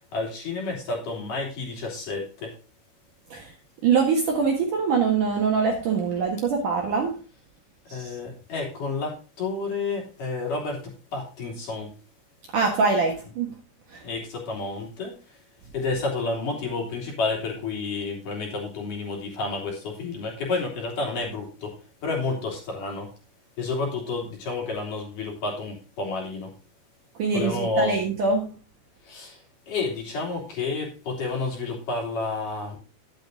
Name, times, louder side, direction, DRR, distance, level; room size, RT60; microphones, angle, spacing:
voice 1, 0.1-2.6 7.9-12.0 14.0-15.2 15.7-23.1 23.6-26.5 27.3-28.0 29.0-32.8, left 3 dB, 50° left, 0 dB, 4.2 m, -30 dB
voice 2, 3.8-7.2 7.9-8.1 12.5-13.6 13.9-14.0 27.2-28.5, right 5 dB, 55° right, 1 dB, 2.5 m, -23 dB
11.0 x 9.4 x 3.8 m, 0.32 s
omnidirectional pair, 5.3 m